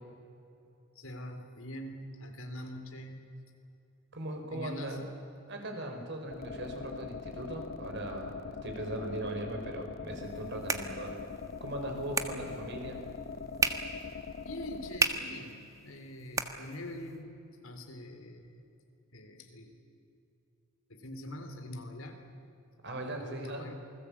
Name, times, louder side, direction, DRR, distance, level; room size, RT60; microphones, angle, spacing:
voice 1, 1.0-3.3 4.5-5.0 14.4-17.3 17.6-18.6 19.1-19.8 20.9-22.2 23.0-23.7, left 1 dB, 90° left, 5 dB, 3.6 m, -44 dB
voice 2, 4.1-5.0 5.5-11.2 11.6-13.0 22.8-23.7, right 1 dB, 60° right, 4 dB, 4.8 m, -39 dB
sound 1, 6.3-15.0, left 4 dB, 50° left, 0.9 m, -42 dB
sound 2, 10.1-17.2, right 3 dB, 15° right, 1.4 m, -36 dB
28.0 x 20.5 x 8.5 m, 2.8 s
head